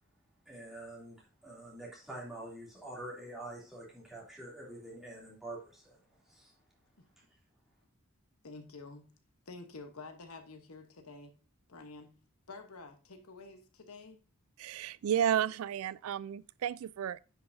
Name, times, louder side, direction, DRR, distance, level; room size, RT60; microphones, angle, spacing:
voice 1, 0.5-6.0 6.2-6.5, right 1 dB, ahead, 2.7 m, -46 dB
voice 2, 8.4-9.1 9.5-11.3 11.7-12.1 12.5-14.2, left 3 dB, 80° left, 1.1 m, -49 dB
voice 3, 14.6-17.2, right 9 dB, 75° right, 0.3 m, -32 dB
9.9 x 5.7 x 2.7 m
head